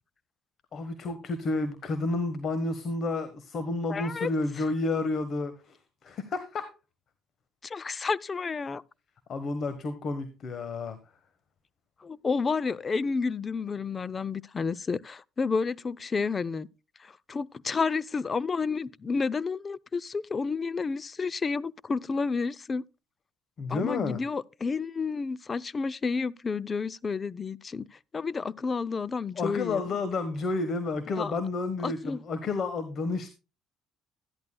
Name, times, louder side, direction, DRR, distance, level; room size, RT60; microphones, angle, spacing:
voice 1, 0.7-5.8 6.0-6.7 9.3-11.0 23.6-24.2 29.4-33.3, left 3 dB, 50° left, 1.3 m, -31 dB
voice 2, 3.9-4.3 7.6-8.8 12.0-16.7 17.0-22.8 23.7-29.9 31.2-31.3 31.8-32.2, left 4 dB, 35° left, 0.5 m, -30 dB
13.0 x 10.5 x 2.3 m
supercardioid pair, 70°, 0 cm